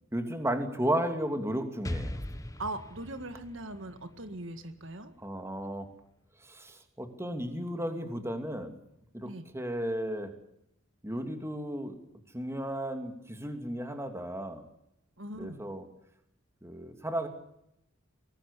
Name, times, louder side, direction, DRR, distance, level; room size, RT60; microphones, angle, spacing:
voice 1, 0.1-2.2 5.2-5.9 6.4-8.8 9.1-10.3 11.0-11.9 12.3-14.6 15.3-15.8 16.6-17.3, right 1 dB, 15° right, 6 dB, 2.8 m, -34 dB
Explosion, 1.8-5.6, left 1 dB, 15° left, 1.2 m, -40 dB
voice 2, 2.6-5.1 9.2-9.5 15.2-15.6, right 2 dB, 70° right, 9 dB, 1.8 m, -40 dB
23.5 x 19.5 x 8.4 m, 0.79 s
head